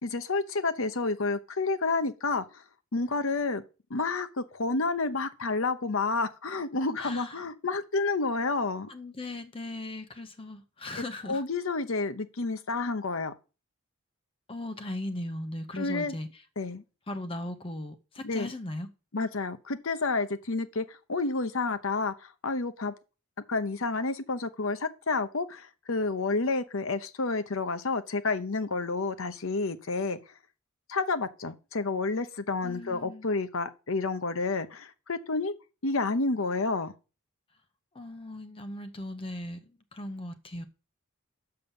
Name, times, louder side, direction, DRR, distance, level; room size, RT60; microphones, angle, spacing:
voice 1, 0.0-2.6 2.9-3.6 3.9-8.9 11.3-13.3 15.8-16.1 16.6-16.8 18.2-18.5 19.1-22.9 23.5-30.2 30.9-35.5 35.8-36.9, left 3 dB, 65° left, 0.9 m, -30 dB
voice 2, 7.0-7.5 8.9-11.4 14.5-16.4 17.1-18.9 32.6-33.3 37.9-40.7, left 1 dB, 25° left, 0.7 m, -38 dB
6.8 x 5.7 x 7.0 m
head